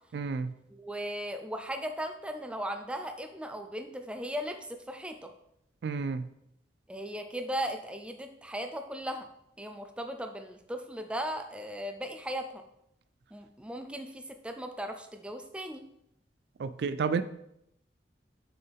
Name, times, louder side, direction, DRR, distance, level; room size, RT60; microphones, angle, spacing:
voice 1, 0.1-0.5 5.8-6.3 16.6-17.2, right 5 dB, 65° right, 12 dB, 0.3 m, -30 dB
voice 2, 0.7-4.6 4.9-5.3 6.9-9.3 9.6-12.6 13.3-15.8, equal, 5° right, 5 dB, 0.5 m, -37 dB
6.8 x 4.4 x 3.4 m, 0.76 s
head